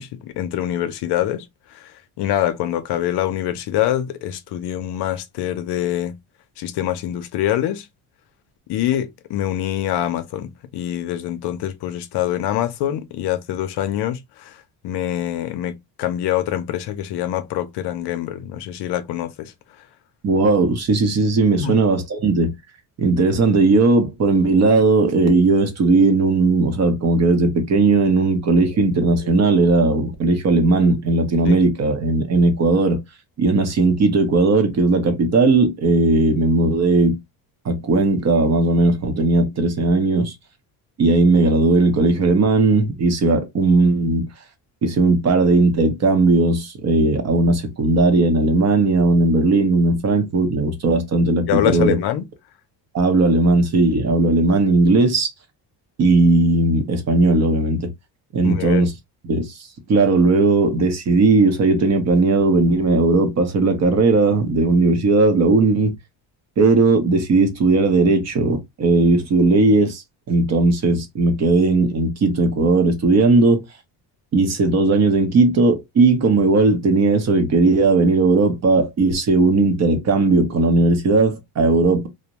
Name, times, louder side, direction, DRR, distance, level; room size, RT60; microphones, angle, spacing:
voice 1, 0.0-1.5 1.7-6.2 6.6-7.9 8.7-14.6 14.8-19.5 21.6-21.8 29.2-29.8 31.5-31.6 51.5-52.2 58.4-58.9, left 12 dB, 65° left, 0.6 m, -25 dB
voice 2, 20.2-22.5 23.0-33.0 33.4-37.2 37.6-40.3 41.0-44.3 44.8-52.0 52.9-55.3 56.0-57.9 58.3-58.9 59.2-65.9 66.6-73.6 74.3-82.1, right 3 dB, 35° right, 0.7 m, -17 dB
2.6 x 2.1 x 2.8 m
cardioid pair, 130°, 44 cm